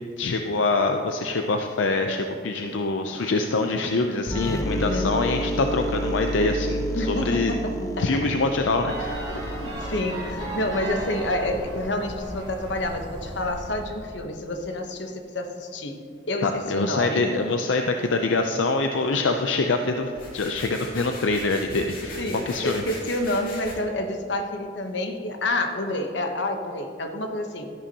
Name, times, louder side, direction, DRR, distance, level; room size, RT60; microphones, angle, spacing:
voice 1, 0.2-7.6 8.0-9.3 16.4-22.2 22.5-22.8, left 3 dB, 85° left, 5 dB, 0.5 m, -25 dB
sound 1, 4.3-11.8, right 1 dB, 20° left, 0.5 m, -31 dB
voice 2, 4.7-5.2 6.9-8.2 9.6-16.0 16.3-17.3 22.2-27.7, left 1 dB, 70° left, 5 dB, 1.0 m, -28 dB
sound 2, 8.9-14.2, right 1 dB, 25° right, 2.7 m, -36 dB
sound 3, 20.1-23.7, left 2 dB, 50° left, 2.4 m, -40 dB
13.0 x 10.5 x 2.9 m, 2.3 s
head